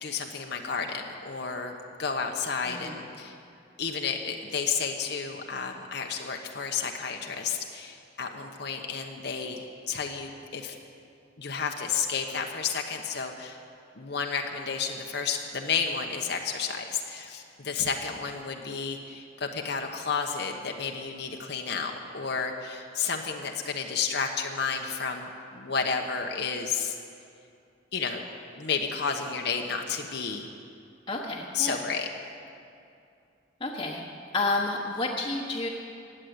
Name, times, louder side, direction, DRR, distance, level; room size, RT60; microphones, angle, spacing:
voice 1, 0.0-3.4 3.8-10.8 11.4-13.6 13.9-26.9 27.9-28.2 28.6-30.5 31.5-32.1, left 5 dB, 60° left, 2 dB, 1.0 m, -31 dB
voice 2, 2.7-3.0 31.1-31.8 33.6-34.1 34.3-35.7, left 2 dB, 25° left, -4 dB, 1.3 m, -30 dB
16.5 x 9.9 x 8.0 m, 2.5 s
head